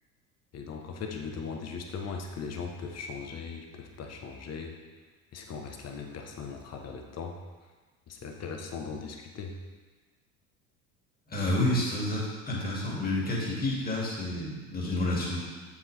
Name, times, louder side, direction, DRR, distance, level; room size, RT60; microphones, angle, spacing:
voice 1, 0.5-4.7 5.3-7.4 8.1-9.6, left 5 dB, 35° left, 3 dB, 1.2 m, -39 dB
voice 2, 11.3-15.5, left 1 dB, 20° left, -4 dB, 2.4 m, -29 dB
7.4 x 6.6 x 3.4 m, 1.4 s
hypercardioid pair, 65°, 43 cm